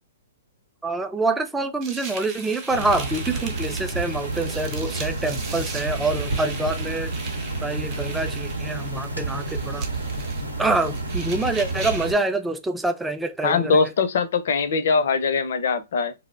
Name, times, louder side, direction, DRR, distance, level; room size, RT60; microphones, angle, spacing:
voice 1, 0.8-7.1 7.6-9.9 10.6-13.9, right 2 dB, 5° right, 0.3 m, -26 dB
sound 1, 1.8-12.2, right 4 dB, 30° right, 0.8 m, -38 dB
sound 2, 2.7-12.1, right 2 dB, 90° right, 0.7 m, -30 dB
voice 2, 13.4-16.1, left 5 dB, 60° left, 0.5 m, -22 dB
2.3 x 2.0 x 3.2 m
figure-of-eight pair, 120°, 0 cm